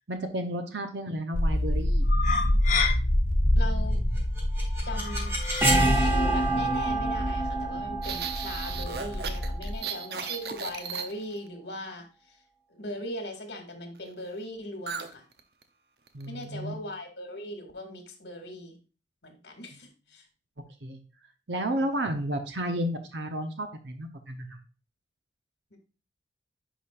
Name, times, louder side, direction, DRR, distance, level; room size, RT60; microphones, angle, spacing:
voice 1, 0.1-2.1 16.1-16.8 19.7-19.8 20.8-21.0 21.5-24.6, right 1 dB, 90° right, 6 dB, 0.9 m, -32 dB
sound 1, 1.3-9.7, left 1 dB, 45° left, 1.0 m, -27 dB
voice 2, 3.6-4.0 4.8-5.3 5.7-12.4 12.7-15.2 16.3-18.8 19.2-20.3 21.8-21.9 25.7-25.8, left 1 dB, 75° left, 4 dB, 2.3 m, -39 dB
sound 2, 4.2-10.0, right 1 dB, 15° right, 2.7 m, -27 dB
sound 3, 8.0-11.5 14.9-15.1 15.4-15.6 16.1-16.4, right 6 dB, 65° right, 0.7 m, -36 dB
10.0 x 5.1 x 2.5 m, 0.34 s
head